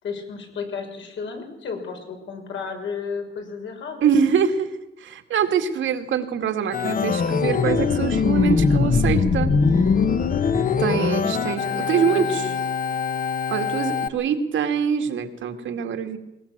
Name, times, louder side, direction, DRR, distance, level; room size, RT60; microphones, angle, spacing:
voice 1, 0.0-4.2 11.4-12.5, left 5 dB, 75° left, 3 dB, 5.9 m, -33 dB
voice 2, 4.0-9.5 10.8-12.5 13.5-16.2, right 7 dB, 85° right, 7 dB, 2.3 m, -24 dB
Organ, 6.7-14.1, left 5 dB, 45° left, 1.3 m, -22 dB
21.0 x 21.0 x 7.4 m, 0.93 s
cardioid pair, 135°, 19 cm